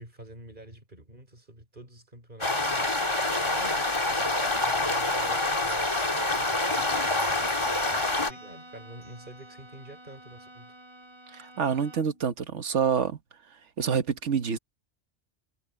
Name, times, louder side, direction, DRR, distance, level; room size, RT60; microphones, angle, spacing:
voice 1, 0.0-2.9 3.4-5.9 6.3-7.1 7.9-10.7, right 1 dB, 45° right, 5.5 m, -48 dB
sound 1, 2.4-8.3, left 2 dB, 25° left, 2.0 m, -26 dB
Bell, 5.6-9.5, equal, 50° left, 5.9 m, -52 dB
Bowed string instrument, 7.6-12.3, right 1 dB, 25° right, 7.7 m, -48 dB
voice 2, 11.3-13.2 13.8-14.6, right 7 dB, 85° right, 1.6 m, -27 dB
omnidirectional pair, 1.2 m